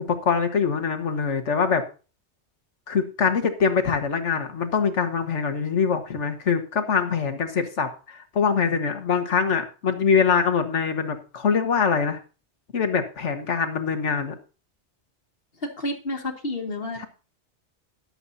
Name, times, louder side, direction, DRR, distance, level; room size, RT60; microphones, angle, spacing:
voice 1, 0.0-1.8 2.9-12.2 12.7-14.4 17.0-17.1, left 6 dB, 85° left, 6 dB, 1.7 m, -23 dB
voice 2, 15.6-17.1, left 1 dB, 55° left, 4 dB, 2.1 m, -31 dB
22.0 x 8.0 x 2.7 m, 0.34 s
omnidirectional pair, 1.2 m